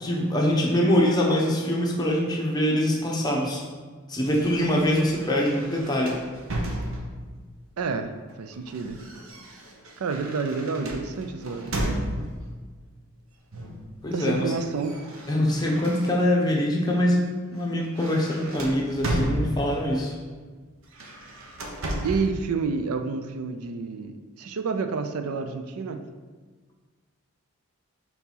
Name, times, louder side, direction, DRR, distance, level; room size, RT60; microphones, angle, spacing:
voice 1, 0.0-3.6 4.1-6.2 14.0-14.5 15.3-20.2, left 1 dB, 20° left, -2 dB, 0.8 m, -24 dB
sound 1, 4.2-7.3 8.3-12.5 13.5-13.9 14.2-16.5 17.0-17.2 17.5-19.9 20.8-22.3, right 1 dB, 70° right, 0.9 m, -34 dB
voice 2, 7.8-9.0 10.0-12.1 14.1-14.9 22.0-26.0, right 4 dB, 90° right, 8 dB, 0.5 m, -29 dB
4.6 x 4.0 x 5.6 m, 1.4 s
head